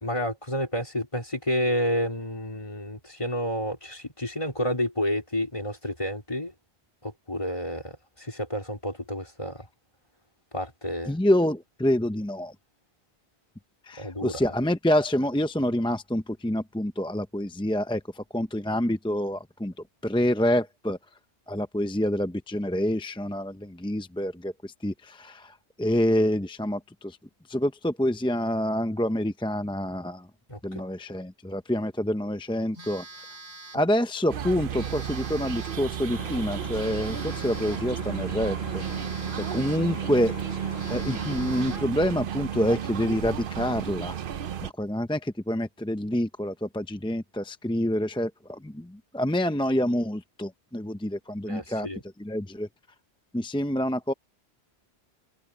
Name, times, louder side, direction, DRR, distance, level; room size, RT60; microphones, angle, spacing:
voice 1, 0.0-6.5 7.0-7.9 8.2-9.6 10.5-11.1 14.0-14.4 30.5-30.6 51.5-52.0, equal, 25° left, 4.1 m, -30 dB
voice 2, 11.1-12.5 13.9-19.7 20.0-21.0 21.5-27.2 27.5-30.3 30.6-33.0 33.7-38.8 39.3-40.3 40.9-44.2 44.6-51.9 52.2-52.7 53.3-54.1, equal, 5° left, 0.5 m, -27 dB
Telephone, 32.7-33.9 34.7-35.9 36.8-37.9 38.8-39.9 40.4-40.5 40.8-41.9, right 2 dB, 30° right, 2.8 m, -45 dB
sound 1, 34.3-44.7, right 9 dB, 55° right, 0.8 m, -33 dB
sound 2, 36.1-41.9, left 3 dB, 60° left, 2.2 m, -41 dB
omnidirectional pair, 1.2 m